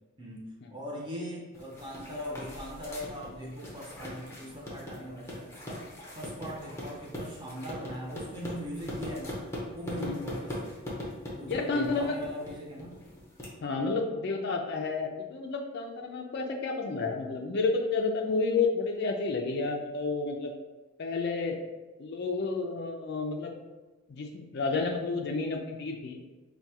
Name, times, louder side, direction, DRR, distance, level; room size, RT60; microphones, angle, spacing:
voice 1, 0.2-5.8 6.1-9.4 9.7-10.9 11.3-13.0, equal, 20° right, -3 dB, 0.7 m, -40 dB
sound 1, 1.5-13.5, left 1 dB, 15° left, 0.7 m, -41 dB
voice 2, 11.5-12.2 13.6-20.5 21.0-21.6 22.0-23.5 24.1-26.2, left 4 dB, 55° left, 2 dB, 0.4 m, -30 dB
4.6 x 2.3 x 2.8 m, 1.2 s
head